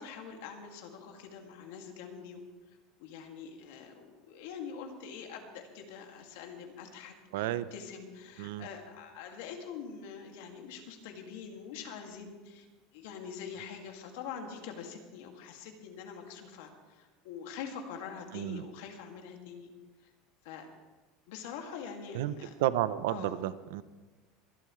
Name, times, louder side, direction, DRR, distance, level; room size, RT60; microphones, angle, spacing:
voice 1, 0.0-2.5 3.0-12.7 12.9-19.7 20.0-20.1 20.4-20.7 21.3-22.5 23.1-23.4, left 6 dB, 75° left, 3 dB, 2.3 m, -44 dB
voice 2, 7.3-7.7 8.4-8.7 18.3-18.6 22.1-22.3 22.6-23.8, right 13 dB, 85° right, 15 dB, 0.6 m, -31 dB
22.5 x 12.0 x 3.2 m, 1.2 s
cardioid pair, 170°, 0 cm